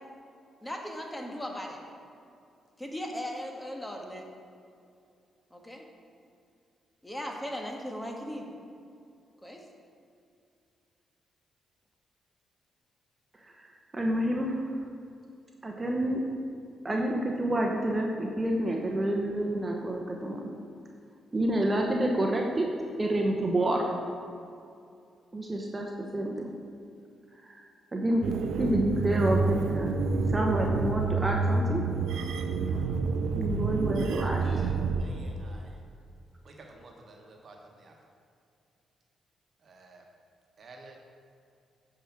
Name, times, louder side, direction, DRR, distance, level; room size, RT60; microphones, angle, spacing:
voice 1, 0.6-1.8 2.8-4.2 5.5-5.8 7.0-8.5 9.4-9.6, equal, 15° left, 1 dB, 1.5 m, -37 dB
voice 2, 13.9-14.7 15.6-16.2 16.8-20.5 21.3-22.7 23.0-23.9 25.3-26.5 27.5-27.6 27.9-29.9 30.3-31.8 33.4-34.4, right 1 dB, 30° right, 0 dB, 1.1 m, -28 dB
sound 1, 28.2-35.0, right 4 dB, 70° right, 0.6 m, -28 dB
voice 3, 34.4-34.7 35.0-35.7 36.4-38.0 39.6-40.0 40.6-41.0, right 3 dB, 55° right, 1 dB, 1.3 m, -50 dB
8.9 x 4.9 x 5.9 m, 2.5 s
hypercardioid pair, 45°, 0 cm